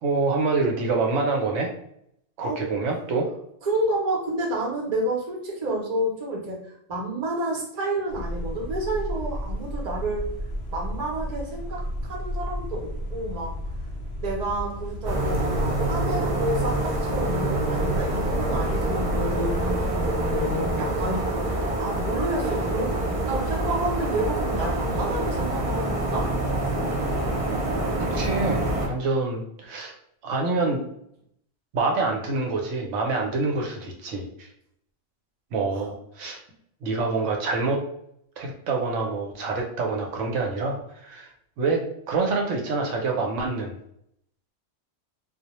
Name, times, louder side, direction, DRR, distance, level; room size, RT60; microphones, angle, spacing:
voice 1, 0.0-1.7 2.4-3.3 28.1-29.9 30.2-30.8 31.7-34.5 35.5-36.4 36.8-37.9 38.4-41.3 41.6-43.8, right 3 dB, 85° right, 1 dB, 0.9 m, -26 dB
voice 2, 3.6-6.6 6.9-10.3 10.7-13.5 14.2-19.8 20.2-21.3 21.8-22.9 23.2-26.3 35.8-35.9, right 1 dB, 40° right, -3 dB, 0.7 m, -29 dB
sound 1, 8.1-20.7, left 1 dB, 65° left, 0.8 m, -32 dB
sound 2, 15.0-28.9, right 1 dB, 65° right, 0.3 m, -26 dB
2.2 x 2.0 x 2.9 m, 0.73 s
omnidirectional pair, 1.2 m